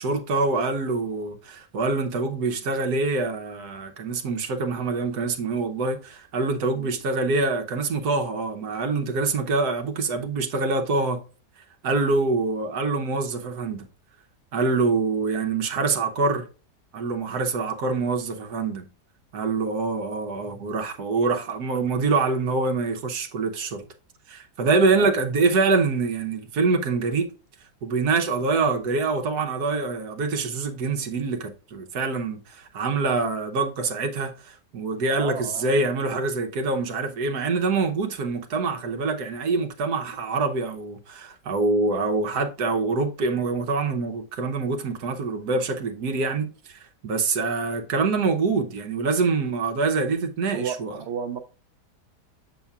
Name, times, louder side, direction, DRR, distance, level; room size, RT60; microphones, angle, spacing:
voice 1, 0.0-11.2 11.8-13.9 14.5-16.5 16.9-18.9 19.3-23.8 24.3-27.3 27.8-51.0, right 3 dB, 65° right, 1.4 m, -25 dB
voice 2, 35.1-35.8 50.5-51.4, right 7 dB, 85° right, 0.5 m, -33 dB
7.1 x 6.9 x 2.4 m
omnidirectional pair, 1.8 m